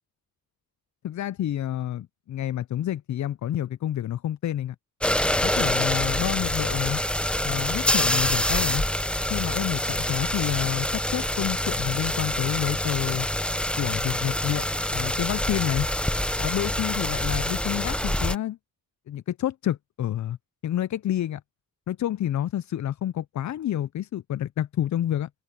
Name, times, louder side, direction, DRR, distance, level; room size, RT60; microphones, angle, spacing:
voice 1, 1.0-4.8 5.4-7.0 7.4-8.9 9.3-13.3 13.8-15.9 16.4-18.6 19.1-20.4 20.6-21.4 21.9-25.3, left 11 dB, 50° left, 0.4 m, -29 dB
sound 1, 5.0-18.3, left 1 dB, 5° left, 0.6 m, -26 dB
open air
cardioid pair, 75°, 38 cm